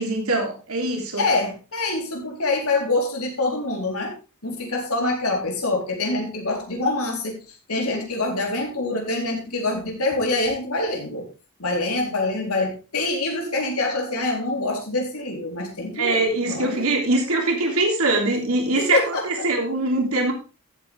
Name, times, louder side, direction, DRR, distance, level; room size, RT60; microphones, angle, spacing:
voice 1, 0.0-1.2 16.0-20.3, right 2 dB, 80° right, 1 dB, 3.2 m, -23 dB
voice 2, 1.2-4.1 4.4-7.4 7.7-11.3 11.6-16.8 18.7-19.2, left 2 dB, 85° left, 1 dB, 4.1 m, -25 dB
14.5 x 8.3 x 3.6 m, 0.32 s
head